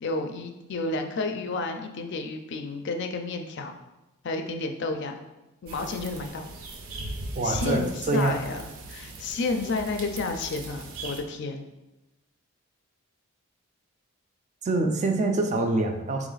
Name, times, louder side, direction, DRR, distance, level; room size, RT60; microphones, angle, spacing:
voice 1, 0.0-3.7 4.2-5.2 5.6-6.5 7.4-11.6, left 3 dB, 55° left, 5 dB, 0.4 m, -31 dB
sound 1, 5.7-11.2, right 2 dB, 75° right, 0.7 m, -39 dB
voice 2, 7.4-8.3 14.6-16.3, right 2 dB, 35° right, 4 dB, 0.4 m, -25 dB
4.0 x 3.0 x 3.9 m, 1.0 s
head